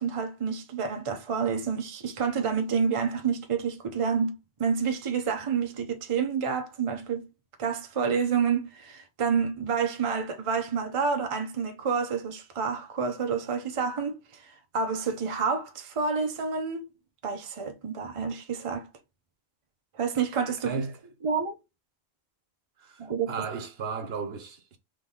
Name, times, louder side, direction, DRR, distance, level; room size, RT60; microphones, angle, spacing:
voice 1, 0.0-7.3 7.6-14.1 14.7-16.8 17.2-18.9 20.0-20.7 21.2-21.5 23.0-23.5, right 6 dB, 35° right, 0.7 m, -28 dB
voice 2, 20.6-21.0 22.8-24.8, right 5 dB, 70° right, 1.0 m, -35 dB
3.6 x 3.1 x 3.7 m
omnidirectional pair, 1.1 m